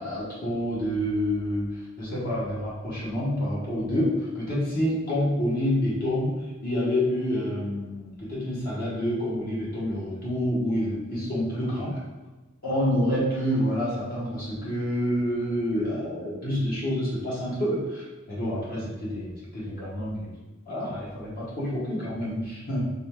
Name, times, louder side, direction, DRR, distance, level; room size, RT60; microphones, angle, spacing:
voice 1, 0.0-12.0 12.6-20.4 20.6-22.9, equal, 45° left, -7 dB, 1.3 m, -28 dB
4.1 x 3.2 x 3.5 m, 1.2 s
head